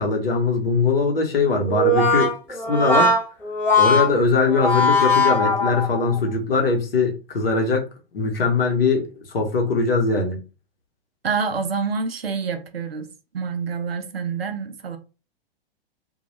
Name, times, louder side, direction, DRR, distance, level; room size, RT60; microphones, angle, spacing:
voice 1, 0.0-3.1 3.8-7.9 8.1-9.1 9.3-10.4, left 4 dB, 70° left, 0.9 m, -21 dB
Brass instrument, 1.7-6.2, left 2 dB, 5° left, 0.8 m, -20 dB
voice 2, 11.2-13.1 13.3-15.0, right 5 dB, 80° right, 0.6 m, -27 dB
2.2 x 2.1 x 3.0 m
figure-of-eight pair, 100°, 30 cm